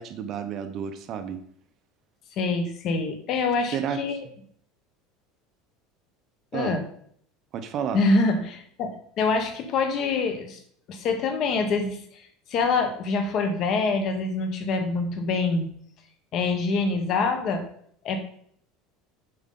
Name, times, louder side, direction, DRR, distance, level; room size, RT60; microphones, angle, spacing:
voice 1, 0.0-1.4 3.7-4.0 6.5-6.7 7.5-8.0, right 8 dB, 40° right, 9 dB, 0.7 m, -31 dB
voice 2, 2.4-4.2 6.5-6.8 7.9-10.6 10.9-12.2 12.5-15.7 16.3-17.6 18.0-18.2, left 3 dB, 45° left, 7 dB, 1.1 m, -25 dB
7.8 x 4.9 x 3.8 m, 0.62 s
cardioid pair, 145°, 0 cm